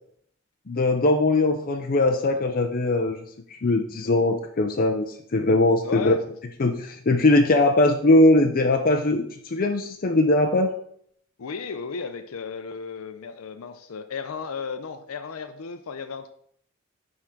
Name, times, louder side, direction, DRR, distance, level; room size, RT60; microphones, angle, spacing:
voice 1, 0.7-3.2 3.5-6.2 6.6-10.7, left 2 dB, 45° left, 4 dB, 0.6 m, -20 dB
voice 2, 5.8-6.2 11.4-16.3, left 5 dB, 85° left, 9 dB, 0.5 m, -34 dB
9.7 x 3.7 x 5.9 m, 0.66 s
head